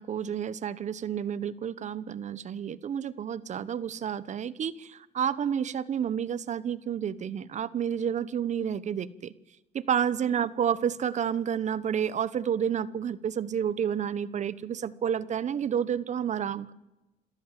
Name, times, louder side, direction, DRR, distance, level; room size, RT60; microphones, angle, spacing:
voice 1, 0.0-9.3 9.7-16.7, right 8 dB, 45° right, 17 dB, 1.1 m, -30 dB
27.5 x 14.0 x 7.5 m, 0.98 s
cardioid pair, 110°, 17 cm